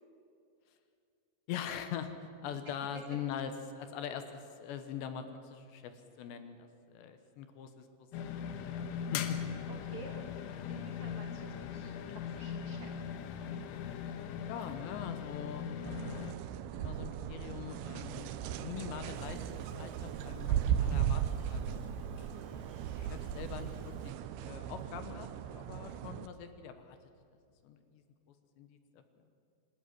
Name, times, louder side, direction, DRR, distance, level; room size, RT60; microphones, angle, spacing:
voice 1, 1.5-2.1 2.4-6.6 6.9-8.1 8.4-9.4 14.5-15.7 16.7-18.3 18.6-21.8 22.9-23.7 24.0-27.0 27.6-28.0 28.6-29.0, left 8 dB, 75° left, 8 dB, 3.3 m, -43 dB
sound 1, 8.1-16.3, left 7 dB, 90° left, 3.7 m, -40 dB
voice 2, 9.7-13.1 22.2-22.6, right 4 dB, 65° right, 2 dB, 1.9 m, -51 dB
sound 2, 15.8-26.3, right 9 dB, 80° right, 2.3 m, -37 dB
sound 3, 19.1-24.1, right 1 dB, 10° left, 2.1 m, -53 dB
26.0 x 13.5 x 9.9 m, 2.4 s
omnidirectional pair, 5.4 m